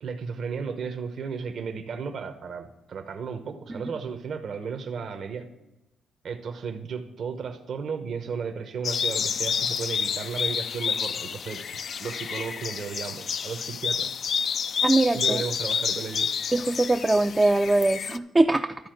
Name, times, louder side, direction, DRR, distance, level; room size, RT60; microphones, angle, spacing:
voice 1, 0.0-5.5 6.2-11.6 12.0-14.1 15.1-16.3, right 5 dB, 60° right, 6 dB, 0.9 m, -34 dB
sound 1, 8.8-18.2, left 6 dB, 55° left, 0.4 m, -29 dB
voice 2, 14.8-15.4 16.5-18.8, right 2 dB, 20° right, 5 dB, 0.4 m, -22 dB
12.0 x 4.2 x 7.8 m, 0.95 s
cardioid pair, 90°, 0 cm